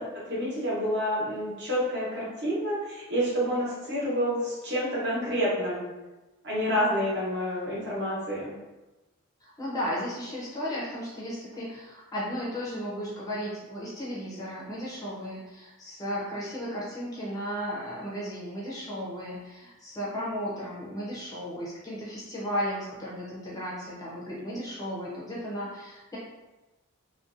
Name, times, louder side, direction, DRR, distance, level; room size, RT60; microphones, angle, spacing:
voice 1, 0.0-5.8 6.4-8.5, equal, 50° right, -6 dB, 0.9 m, -28 dB
voice 2, 9.4-26.2, equal, 15° left, -6 dB, 0.4 m, -35 dB
2.5 x 2.2 x 2.5 m, 1.1 s
head